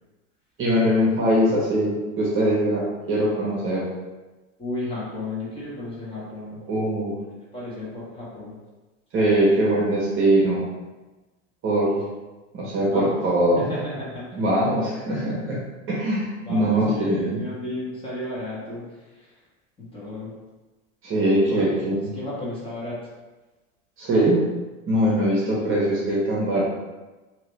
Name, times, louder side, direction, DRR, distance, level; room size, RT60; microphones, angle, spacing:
voice 1, 0.6-3.8 6.7-7.1 9.1-10.6 11.6-12.0 12.5-13.6 14.3-15.6 15.9-17.4 21.0-22.1 24.0-24.4 24.9-26.6, right 1 dB, 30° right, -5 dB, 1.1 m, -22 dB
voice 2, 4.6-6.6 7.5-8.6 12.9-13.2 13.5-14.4 16.4-19.3 19.8-20.3 21.5-21.7 22.1-23.0 25.6-25.7, left 1 dB, 15° left, -8 dB, 1.4 m, -33 dB
2.9 x 2.9 x 3.3 m, 1.2 s
hypercardioid pair, 105°, 39 cm